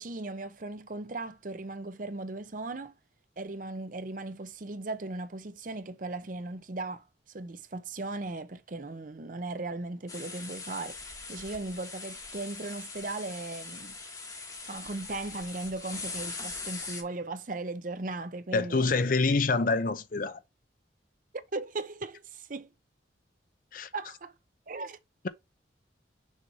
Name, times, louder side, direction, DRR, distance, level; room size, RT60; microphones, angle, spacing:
voice 1, 0.0-3.0 3.4-14.0 14.6-18.9 21.5-22.7 23.9-24.3 24.7-25.0, right 2 dB, 45° right, 0.7 m, -37 dB
sound 1, 10.1-17.0, left 4 dB, 20° left, 1.2 m, -41 dB
voice 2, 18.5-20.4 23.7-23.9, left 3 dB, 45° left, 0.5 m, -26 dB
6.4 x 3.2 x 4.8 m
head